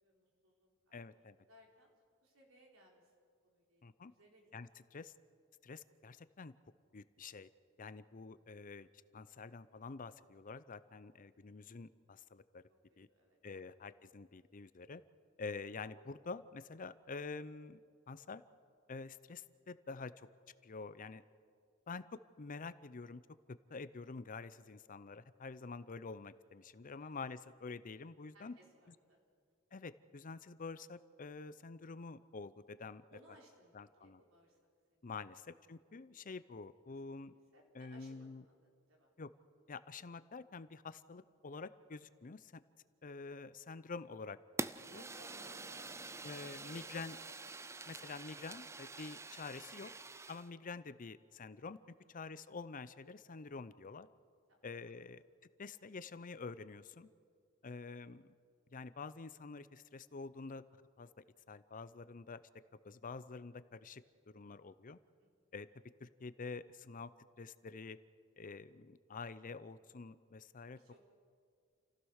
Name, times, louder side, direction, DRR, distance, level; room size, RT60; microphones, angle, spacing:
voice 1, 0.0-1.2 1.5-1.9 2.2-3.1 3.4-4.5 8.3-8.5 13.1-13.7 27.0-27.1 28.3-29.2 29.5-29.6 33.1-34.6 34.9-35.0 37.2-39.1 44.8-47.4 51.9-52.2 54.5-54.6 54.9-55.0 65.2-65.5 70.7-71.0, equal, 75° right, 0 dB, 4.2 m, -64 dB
voice 2, 0.9-1.4 3.8-4.1 4.5-5.1 5.6-6.5 6.9-7.5 7.8-8.9 9.1-12.6 13.0-13.1 13.4-15.0 15.4-17.8 18.1-18.4 18.9-20.3 20.6-21.2 21.9-22.0 22.4-23.2 23.7-28.5 29.7-33.0 33.7-34.2 35.0-37.3 37.7-38.4 39.2-39.3 39.7-42.6 43.0-45.0 46.2-47.2 47.9-49.9 50.3-54.1 54.6-55.2 55.6-57.1 57.6-58.3 58.7-60.6 61.0-61.1 61.5-62.4 62.8-64.0 64.3-65.0 65.5-65.7 66.0-67.1 67.4-68.0 68.4-70.8, left 4 dB, 40° left, 14 dB, 0.6 m, -48 dB
Fire, 44.6-50.5, right 3 dB, 15° right, 0.5 m, -46 dB
28.5 x 15.5 x 6.5 m, 2.1 s
head